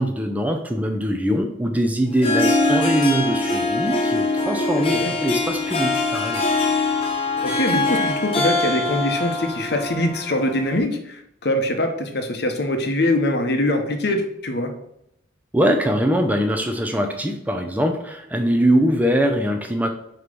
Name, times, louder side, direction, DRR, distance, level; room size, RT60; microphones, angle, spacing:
voice 1, 0.0-6.5 15.5-19.9, equal, 10° right, 4 dB, 0.4 m, -22 dB
Harp, 2.1-10.8, left 2 dB, 30° left, 1.0 m, -23 dB
voice 2, 7.4-14.7, left 1 dB, 55° left, 5 dB, 0.8 m, -23 dB
6.4 x 3.0 x 5.2 m, 0.76 s
head